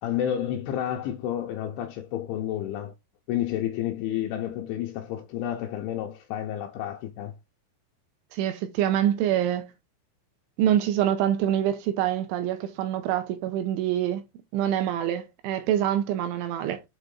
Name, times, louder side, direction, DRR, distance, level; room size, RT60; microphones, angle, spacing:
voice 1, 0.0-2.9 3.3-7.3, left 11 dB, 75° left, 2.9 m, -30 dB
voice 2, 8.3-9.7 10.6-14.2 14.5-16.8, right 11 dB, 80° right, 2.8 m, -25 dB
8.0 x 3.6 x 3.7 m
omnidirectional pair, 6.0 m